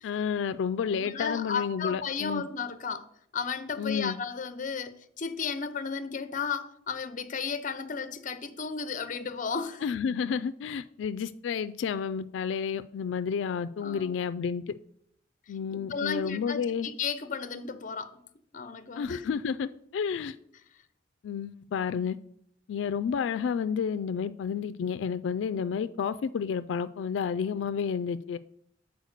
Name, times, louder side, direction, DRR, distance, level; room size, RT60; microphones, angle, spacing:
voice 1, 0.0-2.4 3.8-4.2 9.8-14.7 15.5-16.9 19.0-20.4 21.2-22.2 22.7-28.4, left 6 dB, 90° left, 0.3 m, -31 dB
voice 2, 1.0-3.1 3.3-9.8 13.8-14.3 15.7-18.1 18.5-19.3, left 5 dB, 45° left, 0.6 m, -34 dB
8.1 x 4.5 x 6.5 m
head